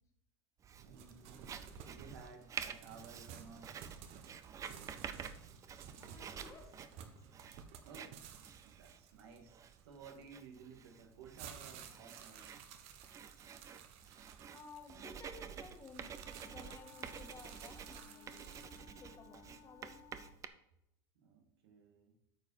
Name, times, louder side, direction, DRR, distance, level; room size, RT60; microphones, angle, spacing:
Writing, 0.6-20.5, right 7 dB, 25° right, 0.6 m, -50 dB
sound 1, 0.8-10.2 10.9-18.9, right 7 dB, 50° right, 1.1 m, -54 dB
voice 1, 0.8-1.4 1.8-3.8 7.8-9.6 9.8-12.5 17.0-17.1 21.2-22.1, right 5 dB, 85° right, 3 dB, 1.9 m, -56 dB
voice 2, 6.0-6.7 13.0-13.3 14.5-16.1 16.4-18.5 19.0-20.0, left 4 dB, 25° left, 4 dB, 1.6 m, -56 dB
Wind instrument woodwind instrument, 16.0-20.4, left 7 dB, 45° left, 2.1 m, -60 dB
8.9 x 5.1 x 5.6 m, 0.80 s
supercardioid pair, 140°, 13 cm